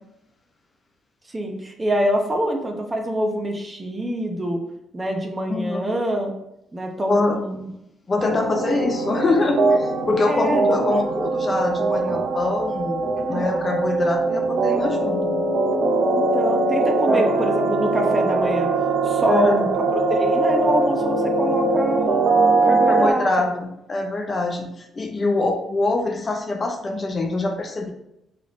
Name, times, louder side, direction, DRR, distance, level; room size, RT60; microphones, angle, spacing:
voice 1, 1.3-4.6 4.9-6.3 6.7-7.7 10.2-10.8 16.1-18.7 19.0-22.3 22.6-23.5, right 1 dB, 20° right, 2 dB, 0.8 m, -25 dB
voice 2, 5.5-5.9 7.1-7.4 8.1-13.0 13.3-15.4 17.0-17.2 19.3-19.6 22.9-27.9, left 3 dB, 35° left, 3 dB, 0.6 m, -24 dB
sound 1, 8.2-23.1, right 3 dB, 75° right, 0.6 m, -21 dB
3.7 x 3.3 x 3.9 m, 0.83 s
cardioid pair, 90°, 0 cm